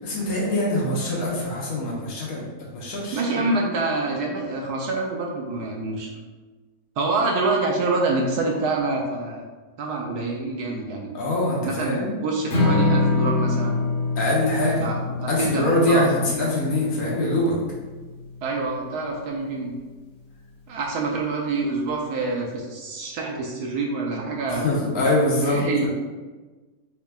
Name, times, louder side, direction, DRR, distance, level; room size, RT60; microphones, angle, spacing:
voice 1, 0.0-2.5 2.7-3.5 11.1-12.1 14.2-14.9 15.3-17.6 24.5-25.9, left 1 dB, 60° left, -4 dB, 1.2 m, -23 dB
voice 2, 3.1-6.2 7.0-9.4 9.8-11.1 11.6-13.8 14.8-16.1 18.4-19.7 20.7-24.7 25.4-25.9, right 3 dB, 70° right, 0 dB, 1.0 m, -26 dB
Strum, 12.5-18.8, left 3 dB, 40° left, 1.2 m, -25 dB
4.6 x 3.4 x 2.3 m, 1.3 s
omnidirectional pair, 1.9 m